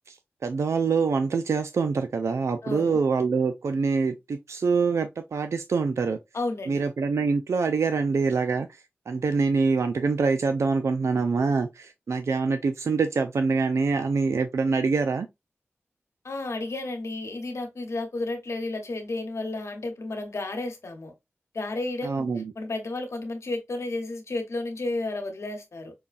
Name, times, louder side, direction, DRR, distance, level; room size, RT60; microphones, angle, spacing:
voice 1, 0.4-6.2 6.7-15.3 22.0-22.5, right 4 dB, 80° right, 0.4 m, -25 dB
voice 2, 2.6-3.0 6.3-6.8 16.2-21.1 21.5-22.2 22.5-25.9, left 2 dB, 80° left, 1.2 m, -32 dB
5.4 x 2.3 x 2.4 m
cardioid pair, 45°, 5 cm